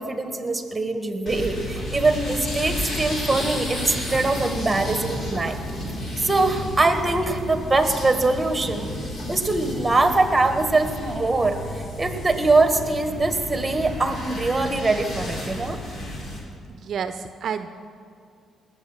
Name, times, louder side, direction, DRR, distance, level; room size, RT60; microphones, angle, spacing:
voice 1, 0.0-5.6 6.2-8.9 9.3-15.8, right 2 dB, 15° right, 7 dB, 1.6 m, -23 dB
sound 1, 1.3-16.4, left 1 dB, 50° left, 3.9 m, -32 dB
voice 2, 16.7-17.7, right 7 dB, 60° right, 10 dB, 0.6 m, -30 dB
20.0 x 7.8 x 7.4 m, 2.4 s
cardioid pair, 90°, 0 cm